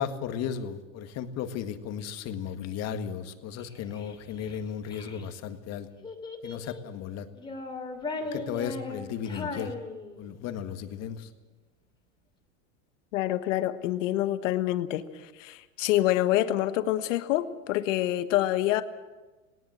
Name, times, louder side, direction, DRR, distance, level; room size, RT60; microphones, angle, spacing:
voice 1, 0.0-5.9 6.4-7.3 8.3-9.7 10.2-11.3, left 8 dB, 40° left, 8 dB, 1.8 m, -35 dB
Child speech kid speaking, 3.6-5.3 6.0-6.9 7.3-10.5, left 3 dB, 10° left, 2.7 m, -38 dB
voice 2, 13.1-18.8, left 14 dB, 70° left, 10 dB, 1.4 m, -27 dB
19.0 x 18.0 x 7.7 m, 1.2 s
supercardioid pair, 130°, 40 cm